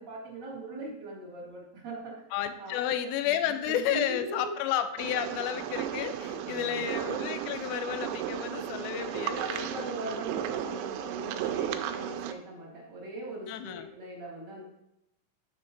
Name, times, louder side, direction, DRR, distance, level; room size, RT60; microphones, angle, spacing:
voice 1, 0.0-2.2 2.6-2.9 3.2-4.5 6.4-6.9 9.2-14.6, right 2 dB, 30° right, -5 dB, 2.3 m, -41 dB
voice 2, 2.3-9.9 13.5-13.9, left 10 dB, 90° left, 9 dB, 2.1 m, -32 dB
sound 1, 5.0-12.3, right 10 dB, 80° right, 2.3 m, -34 dB
7.5 x 3.7 x 5.8 m, 0.84 s
omnidirectional pair, 4.9 m